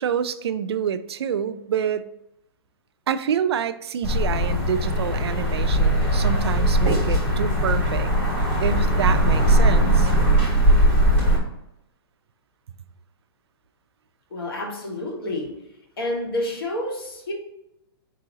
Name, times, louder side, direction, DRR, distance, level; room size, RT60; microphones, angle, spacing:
voice 1, 0.0-2.1 3.1-8.1 8.6-10.1, right 8 dB, 85° right, 0.4 m, -27 dB
sound 1, 4.0-11.4, right 1 dB, 10° left, 1.3 m, -19 dB
voice 2, 14.3-15.6 16.0-17.3, left 1 dB, 65° left, 1.2 m, -29 dB
4.7 x 2.8 x 3.8 m
hypercardioid pair, 180°, 13 cm